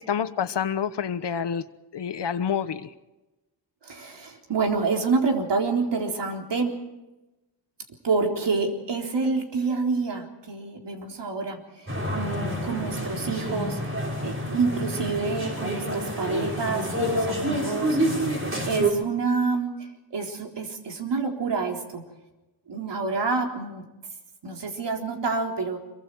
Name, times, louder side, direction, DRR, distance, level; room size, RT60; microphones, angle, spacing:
voice 1, 0.0-1.6 1.9-2.9, left 7 dB, 70° left, 12 dB, 1.2 m, -28 dB
voice 2, 3.8-6.8 8.0-13.8 14.2-18.3 18.7-19.7 20.1-22.0 22.7-23.9 24.4-25.8, right 4 dB, 70° right, 2 dB, 4.0 m, -28 dB
sound 1, 11.9-18.9, right 1 dB, 30° right, 5.8 m, -28 dB
25.5 x 23.5 x 4.8 m, 1.0 s
wide cardioid pair, 105°, 43 cm